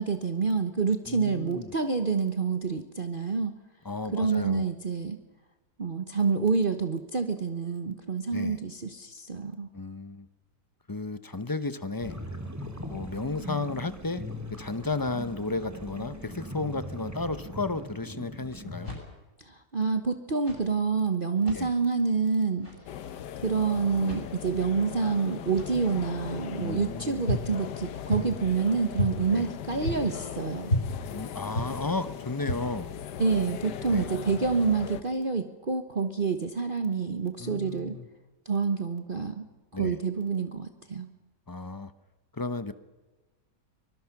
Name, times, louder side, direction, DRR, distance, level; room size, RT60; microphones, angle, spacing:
voice 1, 0.0-3.5 4.1-5.2 5.8-9.7 19.5-22.7 23.4-30.7 33.2-38.0 38.4-39.4 39.8-41.1, right 5 dB, 35° right, 7 dB, 1.2 m, -28 dB
voice 2, 1.1-1.7 3.8-4.7 8.3-8.6 9.7-10.3 10.9-12.2 12.9-14.2 14.5-18.9 21.5-21.7 26.6-27.2 29.3-29.5 31.1-32.9 33.9-34.1 37.4-38.1 39.7-40.0 41.5-41.9 42.3-42.7, left 3 dB, 20° left, 12 dB, 0.6 m, -33 dB
sound 1, 12.0-19.0, left 1 dB, 10° right, 2.4 m, -40 dB
sound 2, 18.8-19.4 20.3-20.7 21.3-21.7 22.5-22.9 23.9-24.4 25.4-25.8 27.2-27.5 28.1-28.4 29.0-29.2 29.8-30.2 30.7-30.9 31.5-31.8 32.4-32.8, left 1 dB, 45° left, 8.1 m, -32 dB
sound 3, 22.9-35.0, left 9 dB, 80° left, 1.5 m, -39 dB
24.5 x 21.0 x 6.0 m, 1.2 s
omnidirectional pair, 1.8 m